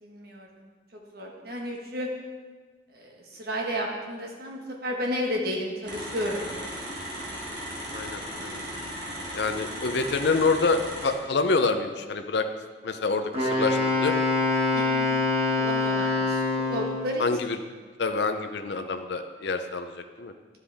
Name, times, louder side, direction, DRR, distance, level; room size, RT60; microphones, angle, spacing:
voice 1, 0.0-0.6 1.1-2.1 2.9-6.5 14.7-15.1 15.6-16.4 16.7-17.3, equal, 55° right, 0 dB, 1.4 m, -32 dB
sound 1, 5.8-11.1, equal, 75° right, 2.6 m, -36 dB
voice 2, 7.9-8.6 9.3-12.5 12.8-14.2 17.2-17.6 18.0-20.3, left 3 dB, 65° left, 7 dB, 0.5 m, -27 dB
Wind instrument woodwind instrument, 13.3-17.1, left 3 dB, 30° right, 1.5 m, -25 dB
11.5 x 7.6 x 3.4 m, 1.4 s
head